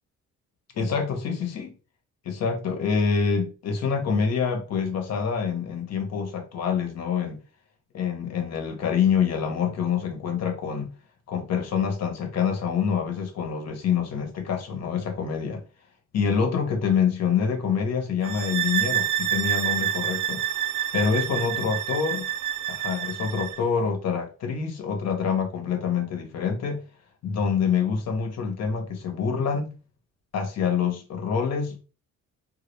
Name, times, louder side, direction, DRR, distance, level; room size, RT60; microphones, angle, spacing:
voice 1, 0.8-1.7 2.2-7.4 7.9-10.9 11.3-15.6 16.1-20.4 20.9-22.2 22.7-26.9 27.2-29.8 30.3-31.8, left 6 dB, 60° left, 0.8 m, -26 dB
sound 1, 18.2-23.6, right 11 dB, 80° right, 0.5 m, -28 dB
2.2 x 2.0 x 3.0 m
cardioid pair, 90°, 30 cm